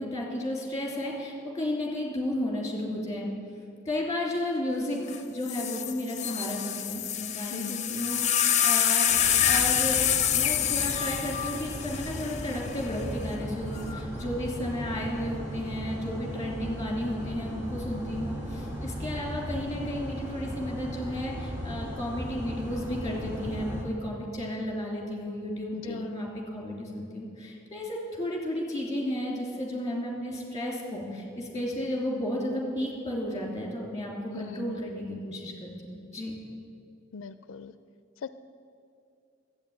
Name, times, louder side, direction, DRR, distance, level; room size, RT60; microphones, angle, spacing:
voice 1, 0.0-3.3 3.8-5.0 5.3-9.2 9.4-36.3, left 1 dB, 20° left, -1 dB, 2.8 m, -33 dB
sound 1, 5.1-5.2 5.5-12.9 13.8-14.2, left 9 dB, 35° left, 0.7 m, -27 dB
voice 2, 7.5-7.9 25.7-26.1 34.3-34.8 37.1-37.7 38.2-38.3, left 5 dB, 85° left, 13 dB, 0.4 m, -40 dB
sound 2, 9.1-23.8, equal, 15° right, 1.9 m, -37 dB
12.0 x 8.7 x 8.6 m, 2.5 s
head